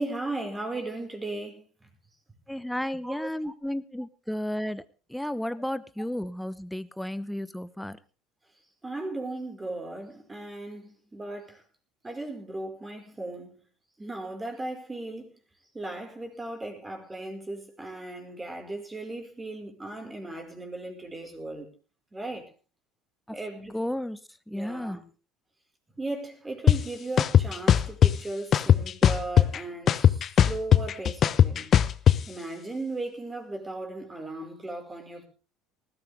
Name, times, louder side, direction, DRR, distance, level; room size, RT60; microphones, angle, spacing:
voice 1, 0.0-1.9 3.0-3.5 5.6-5.7 8.8-11.6 12.0-13.6 14.0-15.3 15.7-21.7 22.1-22.5 23.3-23.8 24.5-25.0 26.0-31.7 32.3-35.2, right 2 dB, 15° right, 5.2 m, -37 dB
voice 2, 2.5-4.8 5.1-8.0 23.3-23.4 23.7-24.2 24.5-25.0, left 1 dB, 5° left, 1.0 m, -33 dB
sound 1, 26.7-26.8 27.2-28.1 28.5-29.6 29.9-32.2, left 9 dB, 45° left, 0.9 m, -18 dB
20.0 x 14.0 x 3.6 m
hypercardioid pair, 75°, 0 cm